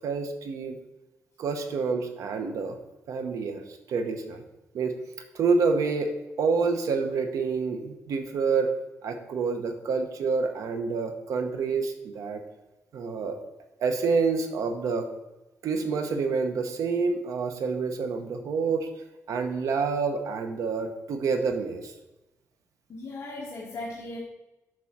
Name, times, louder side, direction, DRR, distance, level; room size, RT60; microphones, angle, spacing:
voice 1, 0.0-0.8 1.4-2.8 3.1-3.6 3.9-4.4 4.7-5.0 5.3-8.7 9.0-12.4 12.9-13.4 13.8-15.1 15.6-21.9, right 4 dB, 80° right, 6 dB, 0.9 m, -28 dB
voice 2, 22.9-24.2, left 2 dB, 50° left, -2 dB, 1.1 m, -37 dB
7.5 x 3.7 x 6.0 m, 0.99 s
wide cardioid pair, 135°, 6 cm